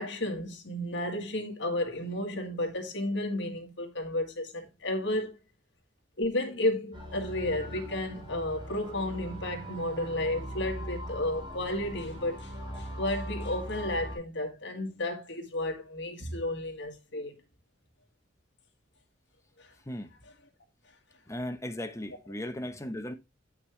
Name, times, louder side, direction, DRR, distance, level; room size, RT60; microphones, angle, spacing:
voice 1, 0.0-5.4 6.2-17.3 19.6-19.7, left 1 dB, 70° left, 1.9 m, -32 dB
sound 1, 6.9-14.2, equal, 25° right, 3.5 m, -40 dB
voice 2, 21.3-23.1, left 1 dB, 15° left, 0.9 m, -37 dB
8.0 x 5.9 x 3.2 m
head